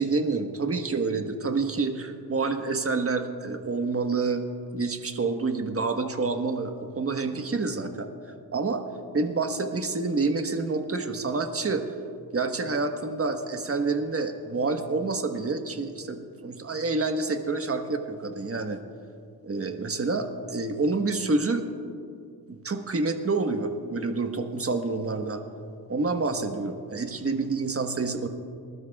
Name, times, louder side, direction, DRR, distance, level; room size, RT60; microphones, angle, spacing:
voice 1, 0.0-4.4 4.7-8.1 8.5-8.8 9.1-11.9 12.3-18.8 19.4-21.7 22.5-25.4 25.9-28.3, right 3 dB, 35° right, 5 dB, 1.3 m, -28 dB
26.5 x 12.5 x 2.4 m, 2.4 s
cardioid pair, 75°, 38 cm